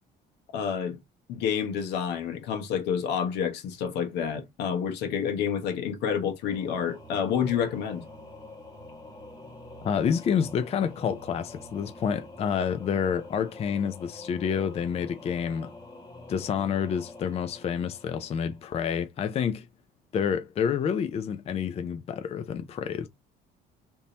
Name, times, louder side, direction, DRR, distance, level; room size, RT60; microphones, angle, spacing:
voice 1, 0.5-1.0 1.3-8.0, left 7 dB, 85° left, 1.0 m, -29 dB
Singing / Musical instrument, 6.4-19.0, left 2 dB, 20° left, 1.2 m, -46 dB
voice 2, 9.8-15.7 16.3-19.7 20.1-23.1, left 7 dB, 40° left, 0.4 m, -28 dB
3.5 x 2.7 x 2.7 m
cardioid pair, 110°, 17 cm